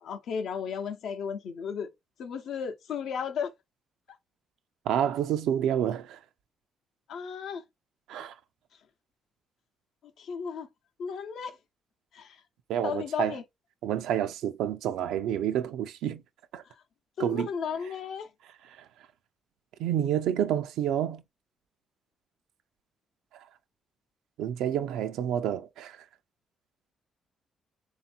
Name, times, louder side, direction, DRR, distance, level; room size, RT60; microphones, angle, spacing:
voice 1, 0.0-1.9 2.2-3.5 7.1-7.6 10.2-10.7 11.0-11.6 12.1-12.4 12.8-13.4 17.2-18.3, left 6 dB, 75° left, 0.7 m, -34 dB
voice 2, 4.9-6.2 8.1-8.4 12.7-13.4 13.8-16.2 16.5-16.6 17.2-17.5 18.8-18.9 19.8-21.2 23.3-23.4 24.4-26.0, right 10 dB, 90° right, 0.5 m, -29 dB
3.5 x 2.6 x 4.2 m
cardioid pair, 90°, 0 cm